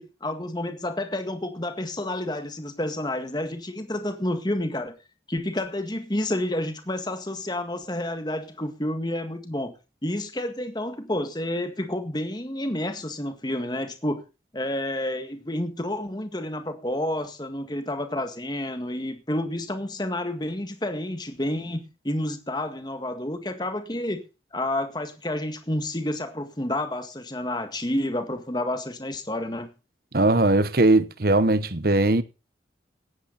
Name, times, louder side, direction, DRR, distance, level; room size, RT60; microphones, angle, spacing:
voice 1, 0.0-4.9 5.3-9.7 10.0-14.2 14.5-24.2 24.5-29.7, left 1 dB, 25° left, 1.8 m, -30 dB
voice 2, 30.1-32.2, right 2 dB, 50° right, 1.1 m, -20 dB
17.5 x 12.0 x 4.1 m
head